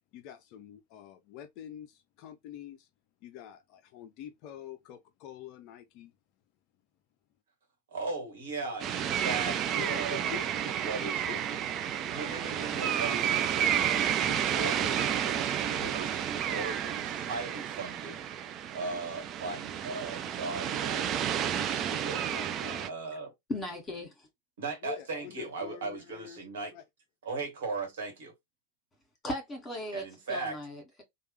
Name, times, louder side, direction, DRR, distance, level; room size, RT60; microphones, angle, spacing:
voice 1, 0.1-2.9 3.2-6.1 9.7-10.9 11.3-11.9 21.9-22.0 22.3-22.9 24.8-26.4 26.7-26.8, left 10 dB, 40° left, 0.4 m, -46 dB
voice 2, 7.9-10.3 10.8-11.2 12.1-18.2 18.7-21.2 21.6-22.2 22.9-23.3 24.6-26.7 27.2-28.3 29.9-30.6, right 3 dB, 60° right, 1.4 m, -38 dB
sound 1, 8.8-22.9, right 9 dB, 30° right, 0.4 m, -31 dB
voice 3, 23.5-24.3 29.2-31.0, left 1 dB, 15° left, 1.7 m, -37 dB
3.2 x 2.4 x 3.1 m
figure-of-eight pair, 90°, 0 cm